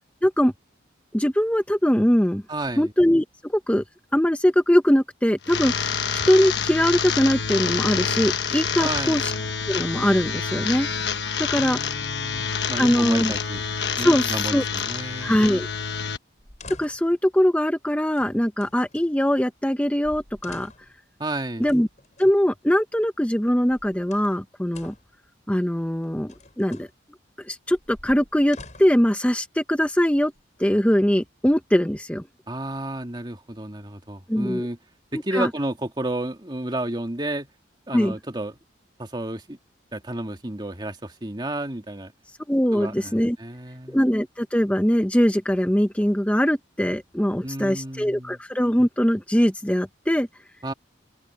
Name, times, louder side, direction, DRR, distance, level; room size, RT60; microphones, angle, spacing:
voice 1, 0.2-0.5 1.1-2.4 2.8-3.8 4.1-9.3 9.7-10.9 11.4-11.8 12.8-13.3 14.0-14.6 15.2-15.7 16.8-20.7 21.6-21.9 22.2-24.9 25.5-26.9 27.4-30.3 30.6-32.3 34.3-34.7 35.1-35.5 37.9-38.1 42.5-43.4 43.9-50.3, equal, 5° left, 0.8 m, -21 dB
voice 2, 2.5-2.9 8.8-9.2 11.6-13.6 14.0-15.4 21.2-21.7 32.5-34.8 35.1-37.5 37.9-38.6 39.0-39.6 39.9-42.1 42.7-44.0 47.4-48.4 50.6-50.7, right 1 dB, 25° right, 2.3 m, -31 dB
sound 1, 5.4-16.2, left 6 dB, 65° left, 1.3 m, -27 dB
sound 2, 16.4-17.2 18.1-19.1 19.7-19.8 20.0-21.0 21.6-22.3 23.5-24.4 24.7-25.2 26.0-26.9 27.7-29.1 29.9-30.6, left 3 dB, 40° left, 5.8 m, -47 dB
open air
head